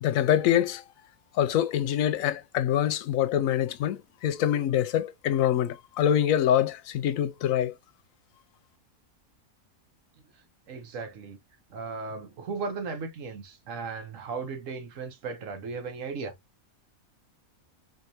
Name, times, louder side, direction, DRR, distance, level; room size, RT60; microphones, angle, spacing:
voice 1, 0.0-0.8 1.3-7.7, left 10 dB, 75° left, 1.0 m, -25 dB
voice 2, 10.7-11.4 11.7-16.4, right 4 dB, 65° right, 1.2 m, -36 dB
4.5 x 2.7 x 2.6 m
omnidirectional pair, 1.5 m